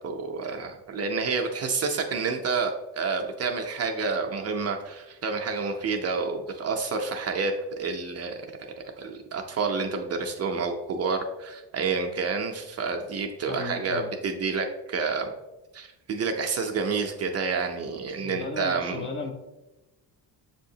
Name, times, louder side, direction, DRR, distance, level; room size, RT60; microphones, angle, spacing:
voice 1, 0.0-8.4 9.0-15.3 15.7-19.1, right 4 dB, 40° right, 3 dB, 0.4 m, -29 dB
voice 2, 13.5-14.2 18.2-19.3, left 3 dB, 30° left, 4 dB, 0.5 m, -35 dB
6.8 x 2.8 x 2.7 m, 1.0 s
cardioid pair, 120°, 43 cm